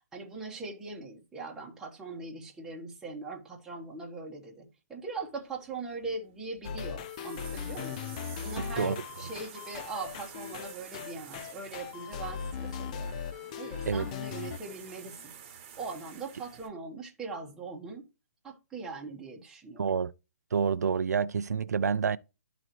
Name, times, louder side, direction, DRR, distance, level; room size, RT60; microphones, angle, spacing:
voice 1, 0.1-8.0 8.4-13.2 13.6-15.4 15.8-18.1 18.4-19.9, right 3 dB, 5° right, 1.1 m, -41 dB
sound 1, 5.5-16.7, right 7 dB, 25° right, 1.2 m, -50 dB
sound 2, 6.6-14.6, left 7 dB, 25° left, 0.3 m, -38 dB
voice 2, 8.6-9.0 13.8-14.1 19.8-20.1 20.5-22.2, right 6 dB, 85° right, 0.4 m, -28 dB
12.0 x 4.0 x 3.0 m
hypercardioid pair, 155°, 9 cm